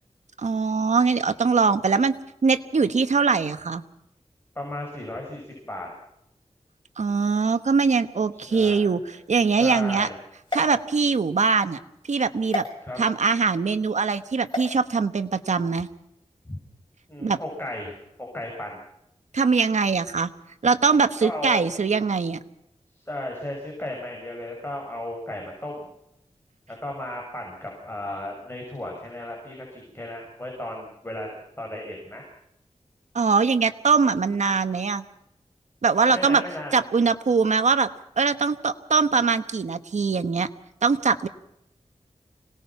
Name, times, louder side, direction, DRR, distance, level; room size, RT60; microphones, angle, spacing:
voice 1, 0.4-2.1 2.4-3.8 7.0-10.1 10.5-11.8 12.1-12.6 13.0-15.9 17.2-17.4 19.3-20.3 20.6-22.4 33.1-35.0 35.8-36.4 36.7-37.9 38.2-40.5 40.8-41.3, right 5 dB, 85° right, 10 dB, 1.2 m, -22 dB
voice 2, 4.5-5.9 8.3-9.2 9.5-10.2 12.8-13.0 16.4-16.6 17.1-18.8 21.2-21.6 22.9-25.9 26.7-32.3 36.1-36.7, left 1 dB, 20° left, 0 dB, 6.2 m, -35 dB
sound 1, 10.4-11.5 12.5-12.7 14.5-14.7, left 2 dB, 40° left, 7.8 m, -32 dB
26.0 x 19.0 x 5.9 m, 0.80 s
wide cardioid pair, 75°, 12 cm